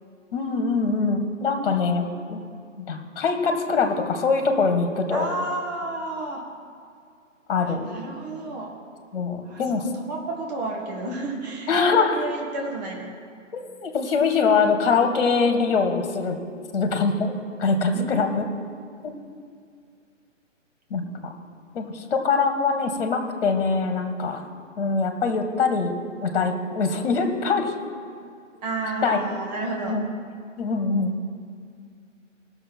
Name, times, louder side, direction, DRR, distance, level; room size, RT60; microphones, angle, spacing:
voice 1, 0.3-2.4 2.8-5.3 7.5-7.9 9.1-9.8 11.7-12.2 13.5-16.4 16.7-18.4 19.0-19.1 20.9-21.3 21.8-24.4 24.8-25.9 26.2-27.7 29.0-29.2 29.9-30.0 30.6-31.2, left 4 dB, 45° left, 6 dB, 1.7 m, -23 dB
voice 2, 5.1-6.4 7.7-8.7 9.5-13.1 17.9-18.7 28.6-30.0, right 2 dB, 30° right, -1 dB, 1.9 m, -32 dB
17.5 x 6.8 x 4.5 m, 2.3 s
figure-of-eight pair, 140°, 38 cm